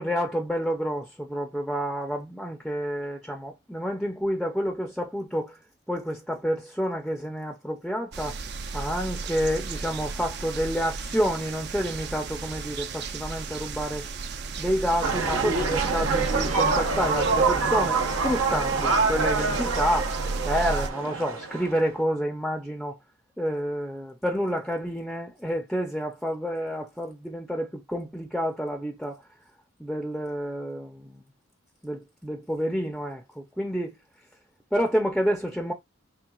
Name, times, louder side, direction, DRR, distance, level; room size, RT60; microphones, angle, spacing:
voice 1, 0.0-5.6 5.9-8.4 8.7-14.1 14.6-23.0 23.4-29.2 29.8-31.2 31.8-34.0 34.7-35.7, equal, ahead, 0.5 m, -29 dB
sound 1, 8.1-20.9, right 4 dB, 55° right, 0.6 m, -34 dB
sound 2, 15.0-21.9, right 4 dB, 80° right, 0.9 m, -26 dB
4.5 x 3.3 x 2.3 m
head